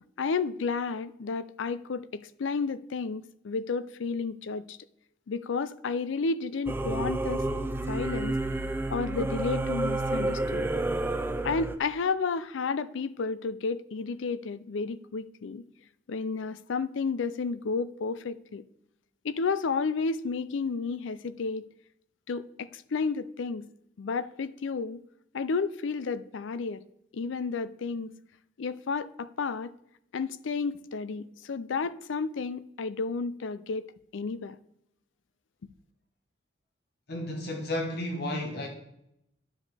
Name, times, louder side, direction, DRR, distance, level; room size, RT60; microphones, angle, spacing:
voice 1, 0.2-4.8 5.3-7.5 7.9-8.4 8.9-10.7 11.4-15.6 16.1-18.6 19.2-21.7 22.3-23.7 24.0-25.0 25.3-26.8 27.1-28.1 28.6-29.7 30.1-34.6, left 4 dB, 70° left, 0.4 m, -32 dB
Singing / Musical instrument, 6.7-11.8, right 2 dB, 10° right, 0.4 m, -30 dB
voice 2, 37.1-38.7, left 1 dB, 55° left, 1.1 m, -32 dB
10.5 x 7.3 x 3.3 m
head